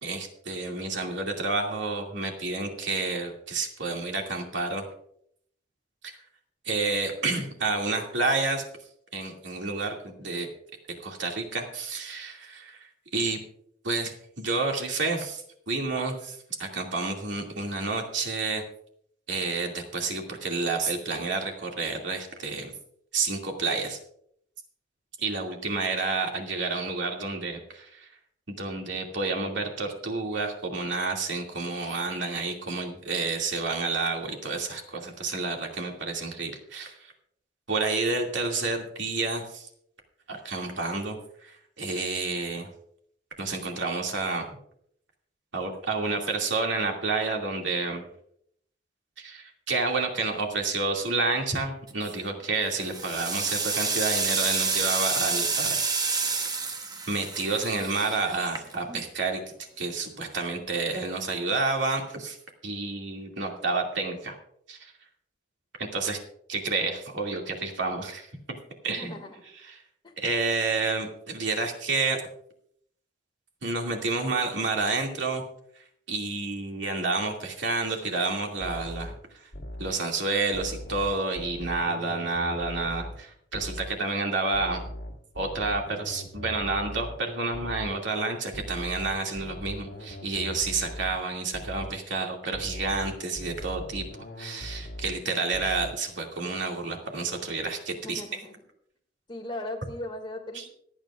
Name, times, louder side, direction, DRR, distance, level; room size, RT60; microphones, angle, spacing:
voice 1, 0.0-4.8 6.0-6.1 6.6-8.6 9.1-10.5 11.0-13.4 13.8-18.6 19.3-22.7 23.1-24.0 25.2-28.1 28.5-37.1 37.7-39.7 40.3-41.2 41.4-42.7 43.4-44.5 45.5-48.0 49.2-55.8 56.1-56.3 57.1-59.4 59.8-62.4 62.6-64.4 64.7-64.9 65.9-66.2 66.5-68.3 68.8-69.1 69.6-69.8 70.2-72.2 73.6-75.4 76.1-79.5 79.8-84.8 85.3-94.1 94.4-98.2 100.5-100.6, right 3 dB, 80° right, 1 dB, 2.5 m, -30 dB
sound 1, 51.9-52.3 52.7-59.0, right 4 dB, 20° right, 1.0 m, -29 dB
voice 2, 68.9-69.4 70.0-70.1 97.9-98.6 99.3-100.7, left 1 dB, 25° left, 3 dB, 2.2 m, -38 dB
sound 2, 78.6-80.1 80.5-83.3 83.5-84.0 84.5-88.1 88.5-91.3 91.5-92.0 92.5-95.3 95.5-96.1, equal, 60° left, 2.3 m, -40 dB
26.0 x 8.8 x 2.5 m, 0.69 s
head